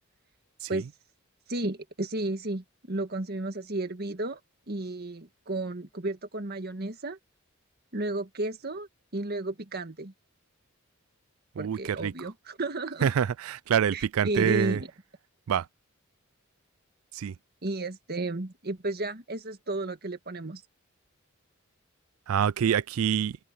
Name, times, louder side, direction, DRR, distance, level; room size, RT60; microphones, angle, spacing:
voice 1, 1.5-4.4 4.7-7.2 7.9-10.1 11.6-13.1 13.9-14.9 17.6-20.6, right 2 dB, 50° right, 1.7 m, -33 dB
voice 2, 11.6-12.1 13.0-14.8 15.5-15.6 17.1-17.3 22.3-23.4, right 8 dB, 90° right, 0.4 m, -26 dB
open air
head